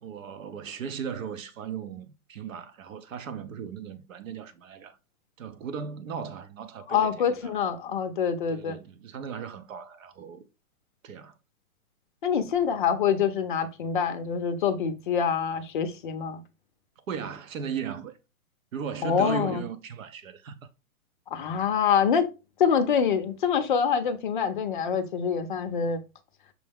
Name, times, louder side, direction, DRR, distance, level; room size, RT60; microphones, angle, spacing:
voice 1, 0.0-5.0 5.4-7.6 8.5-10.4 11.0-11.3 17.1-18.2 18.7-20.7, right 7 dB, 65° right, 0.8 m, -37 dB
voice 2, 6.9-8.8 12.2-16.4 19.0-19.6 21.3-22.3 22.6-26.0, left 7 dB, 35° left, 0.5 m, -25 dB
6.1 x 2.1 x 3.4 m
hypercardioid pair, 155°, 43 cm